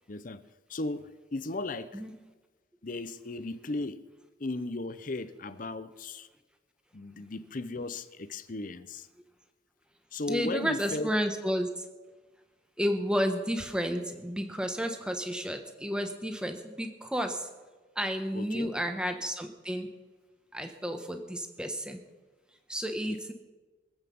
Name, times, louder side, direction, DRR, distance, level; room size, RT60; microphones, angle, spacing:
voice 1, 0.1-0.4 0.7-2.0 2.8-4.1 4.4-6.3 6.9-9.1 10.1-11.1 18.3-18.7 23.1-23.2, left 2 dB, 45° left, 0.7 m, -36 dB
voice 2, 10.3-11.8 12.8-17.5 17.9-19.9 20.5-22.0 22.7-23.3, equal, 5° right, 1.1 m, -31 dB
24.5 x 8.2 x 5.4 m
head